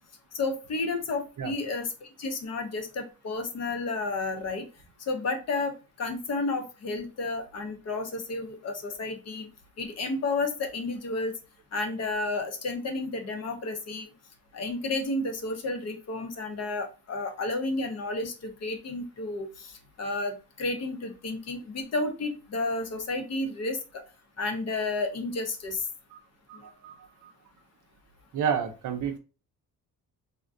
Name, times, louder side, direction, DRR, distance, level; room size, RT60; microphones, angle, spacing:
voice 1, 0.3-4.7 5.0-9.5 9.8-11.3 11.7-14.1 14.5-24.0 24.4-25.9, left 3 dB, 45° left, 0.6 m, -31 dB
voice 2, 26.5-27.3 28.3-29.2, right 7 dB, 55° right, 0.5 m, -31 dB
3.5 x 2.2 x 2.4 m
cardioid pair, 160°, 38 cm